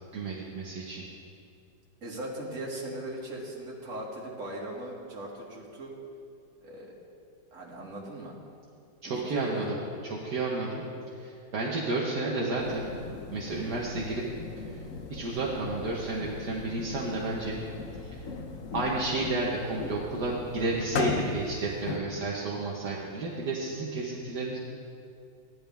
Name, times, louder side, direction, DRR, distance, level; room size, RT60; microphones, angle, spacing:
voice 1, 0.1-1.0 9.0-9.6 10.1-10.9 11.2-12.9 13.3-14.2 15.1-17.6 18.0-18.2 18.7-24.6, right 3 dB, 60° right, -4 dB, 1.7 m, -31 dB
voice 2, 2.0-5.9 6.6-6.9 7.5-8.3 9.0-9.8, right 1 dB, 40° right, -4 dB, 2.2 m, -38 dB
sound 1, 12.6-22.0, left 4 dB, 55° left, 1.0 m, -37 dB
15.5 x 11.0 x 3.5 m, 2.4 s
omnidirectional pair, 2.0 m